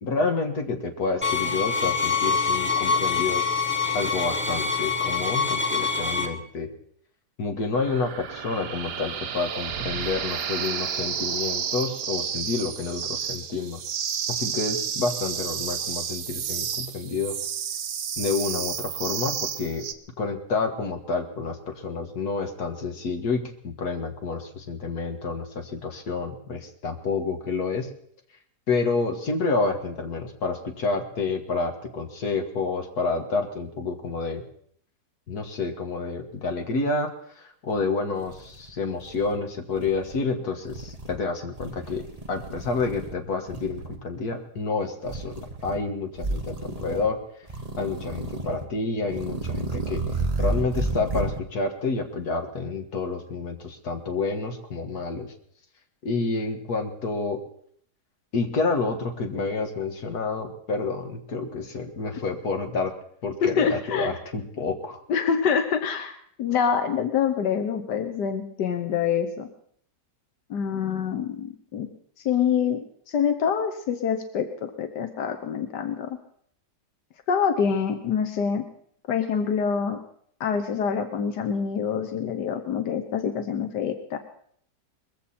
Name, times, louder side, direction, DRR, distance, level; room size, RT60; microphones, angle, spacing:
voice 1, 0.0-3.4 3.9-6.7 7.4-13.8 14.3-17.4 18.2-19.9 20.2-27.9 28.7-34.4 35.3-47.2 47.8-50.0 50.4-55.3 56.0-57.4 58.3-62.9 63.2-65.0, left 4 dB, 65° left, 5 dB, 2.1 m, -29 dB
sound 1, 1.2-6.3, left 5 dB, 10° left, 1.1 m, -25 dB
sound 2, 7.7-19.9, right 8 dB, 85° right, 1.6 m, -31 dB
Milk Frother Alien, 37.8-37.9 38.2-39.4 39.7-40.2 40.6-41.2 41.5-43.2 43.5-44.0 45.0-45.8 46.2-47.1 47.5-48.7 49.1-51.4, right 2 dB, 25° right, 1.2 m, -32 dB
voice 2, 63.4-64.1 65.1-66.1 66.4-69.5 70.5-71.9 72.2-72.8 73.1-76.1 77.3-78.6 79.1-80.0 80.4-84.2, left 7 dB, 90° left, 6 dB, 1.6 m, -26 dB
21.0 x 15.0 x 4.3 m, 0.64 s
omnidirectional pair, 1.8 m